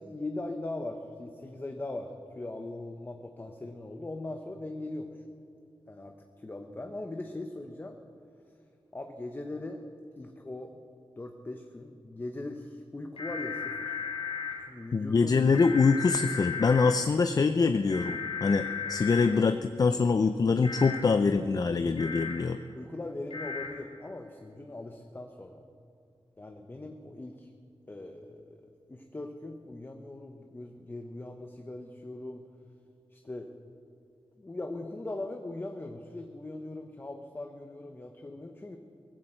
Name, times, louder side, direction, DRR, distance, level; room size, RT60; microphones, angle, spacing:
voice 1, 0.0-5.2 5.9-7.9 8.9-9.8 10.2-10.7 11.2-14.0 14.6-15.3 22.7-25.6 26.4-27.5 27.9-28.6 28.9-32.4 33.1-33.5 34.4-38.8, left 2 dB, 20° left, 4 dB, 0.8 m, -40 dB
sound 1, 13.2-14.5 15.5-16.9 17.9-19.3 20.6-21.0 22.0-22.3 23.3-23.7, left 6 dB, 80° left, 4.5 m, -35 dB
voice 2, 14.9-22.6, left 4 dB, 40° left, 10 dB, 0.5 m, -24 dB
18.5 x 15.5 x 4.4 m, 2.6 s
wide cardioid pair, 140°, 10 cm